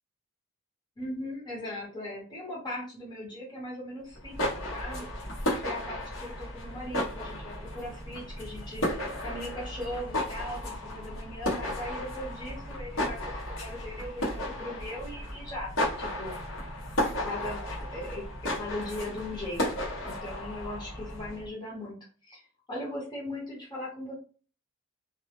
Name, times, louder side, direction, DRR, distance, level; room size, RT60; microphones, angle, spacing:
voice 1, 1.0-5.1 5.6-15.7 16.0-16.4 17.2-18.2 18.5-22.0 22.2-22.4 22.7-24.2, left 1 dB, 20° left, -5 dB, 0.8 m, -39 dB
sound 1, 4.1-21.5, left 1 dB, 70° left, 0.9 m, -34 dB
2.2 x 2.0 x 2.8 m, 0.37 s
head